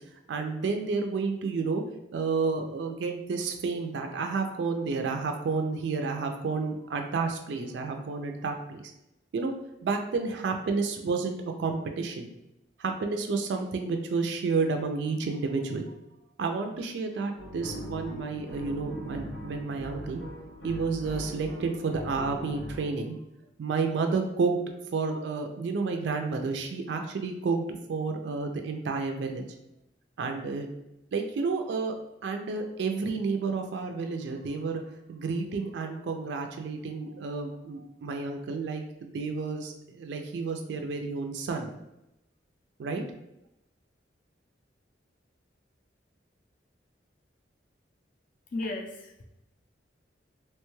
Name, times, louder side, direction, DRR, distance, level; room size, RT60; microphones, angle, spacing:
voice 1, 0.3-1.8 2.1-8.8 9.3-9.5 9.8-12.3 12.8-15.9 16.4-20.2 20.6-23.2 23.6-24.6 24.9-29.4 30.2-30.7 31.1-31.9 32.2-34.8 35.1-41.7 42.8-43.0, right 4 dB, 75° right, 4 dB, 0.3 m, -30 dB
sound 1, 17.3-22.8, equal, 85° left, 1.0 m, -40 dB
voice 2, 48.5-49.2, left 2 dB, 45° left, 3 dB, 0.4 m, -35 dB
3.0 x 2.2 x 3.1 m, 0.87 s
head